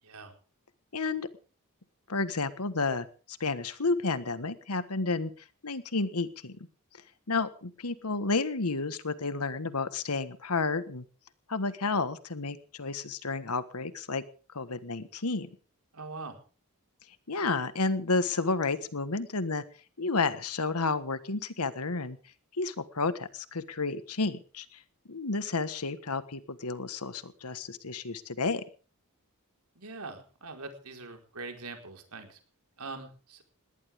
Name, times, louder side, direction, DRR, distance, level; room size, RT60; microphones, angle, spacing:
voice 1, 0.0-0.3 15.9-16.4 29.7-32.4 32.8-33.4, right 3 dB, 85° right, 4 dB, 4.5 m, -42 dB
voice 2, 0.9-1.3 2.1-5.3 5.6-6.6 7.3-11.0 11.5-14.2 14.5-15.5 17.3-19.6 20.0-22.2 22.6-24.8 25.1-28.6, left 3 dB, 85° left, 13 dB, 1.5 m, -31 dB
20.0 x 17.5 x 3.6 m, 0.38 s
head